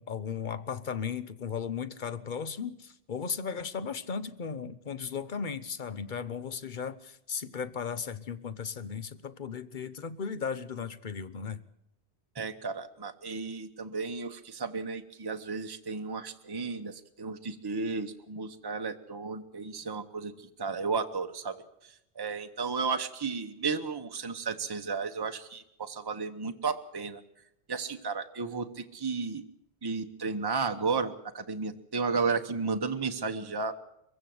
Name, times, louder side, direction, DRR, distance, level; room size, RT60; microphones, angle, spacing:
voice 1, 0.0-11.6, left 6 dB, 45° left, 14 dB, 1.0 m, -36 dB
voice 2, 12.3-20.3 20.6-21.6 22.2-27.2 27.7-29.4 29.8-33.7, right 4 dB, 20° right, 6 dB, 1.0 m, -33 dB
23.0 x 15.5 x 7.8 m, 0.83 s
omnidirectional pair, 1.1 m